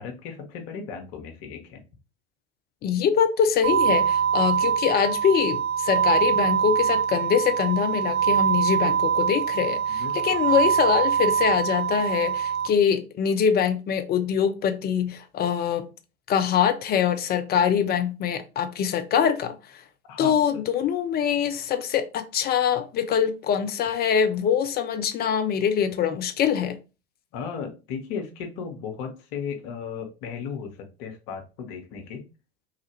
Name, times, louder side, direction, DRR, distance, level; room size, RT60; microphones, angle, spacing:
voice 1, 0.0-1.8 9.9-10.4 20.1-20.6 27.3-32.3, left 6 dB, 55° left, 1.0 m, -36 dB
voice 2, 2.8-15.9 16.3-19.6 20.2-26.8, left 8 dB, 30° left, 0.5 m, -24 dB
sound 1, 3.6-12.7, right 8 dB, 90° right, 0.5 m, -23 dB
3.2 x 2.4 x 3.0 m
hypercardioid pair, 80°, 33 cm